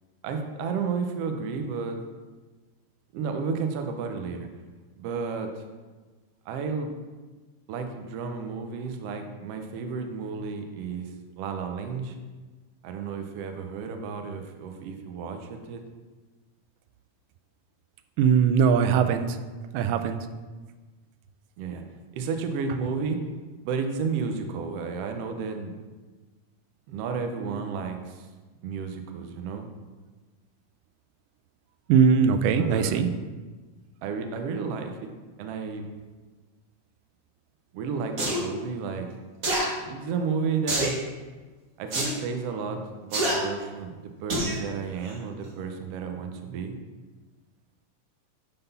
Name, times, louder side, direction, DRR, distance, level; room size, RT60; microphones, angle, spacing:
voice 1, 0.2-2.0 3.1-4.5 5.0-5.6 6.5-6.9 7.7-11.1 11.4-12.2 12.8-15.8 21.6-21.8 22.1-23.2 23.6-25.7 26.9-28.3 28.6-29.7 32.6-33.0 34.0-35.1 35.4-35.9 37.7-39.1 39.8-41.0 41.8-46.7, right 5 dB, 75° right, 5 dB, 1.4 m, -32 dB
voice 2, 18.2-19.4 19.7-20.3 31.9-33.1, right 7 dB, 90° right, 9 dB, 2.1 m, -21 dB
sound 1, 38.2-38.4 39.4-39.7 40.7-41.0 41.9-42.1 43.1-43.4 44.3-44.6 45.0-45.1, right 1 dB, 45° right, 1.1 m, -26 dB
9.2 x 4.0 x 5.5 m, 1.3 s
omnidirectional pair, 3.6 m